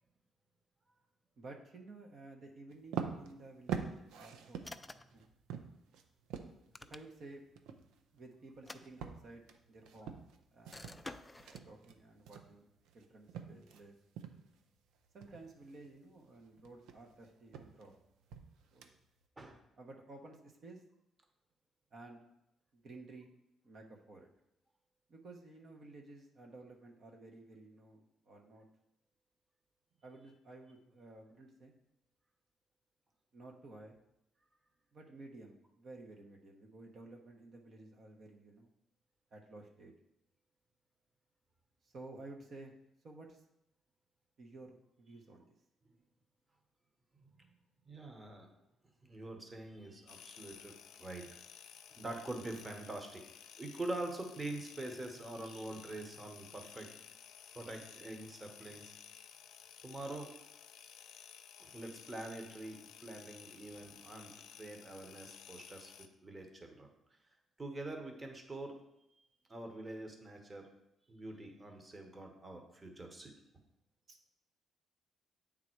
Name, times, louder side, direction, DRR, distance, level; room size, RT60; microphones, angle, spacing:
voice 1, 1.4-5.2 6.9-7.4 8.1-10.2 10.5-11.0 11.7-12.7 12.9-14.0 15.1-17.9 18.7-18.9 19.8-20.8 21.9-22.2 22.7-23.3 23.6-24.3 25.1-28.6 30.0-31.7 33.3-34.0 34.9-38.7 39.3-39.9 41.8-42.7 43.0-43.4 44.4-45.5 74.1-74.2, right 2 dB, 55° right, 1 dB, 1.0 m, -53 dB
sound 1, 2.7-13.8 14.2-14.6 15.0-19.3, right 7 dB, 90° right, 0.6 m, -45 dB
sound 2, 4.6-5.2 6.5-7.4 8.5-9.5 10.7-11.7, left 2 dB, 15° left, 0.4 m, -51 dB
voice 2, 47.2-47.5 47.9-48.5 49.0-51.2 52.0-53.2 53.6-56.9 57.5-58.9 59.8-60.3 61.6-66.9 67.6-68.8 69.5-70.7 71.1-73.3, right 2 dB, 25° right, 3 dB, 1.1 m, -45 dB
sound 3, 50.1-66.1, left 9 dB, 85° left, 0.5 m, -55 dB
8.5 x 3.8 x 4.6 m, 0.84 s
cardioid pair, 90°, 0 cm